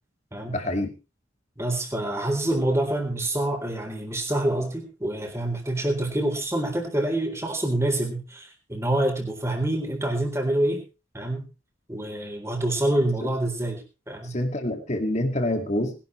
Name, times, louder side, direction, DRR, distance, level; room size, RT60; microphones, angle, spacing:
voice 1, 0.5-0.9 13.2-13.3 14.2-16.0, left 1 dB, 35° left, 4 dB, 2.3 m, -27 dB
voice 2, 1.6-10.8 11.1-11.5 11.9-14.4, right 1 dB, 15° right, 3 dB, 3.9 m, -26 dB
20.5 x 12.0 x 3.3 m, 0.31 s
head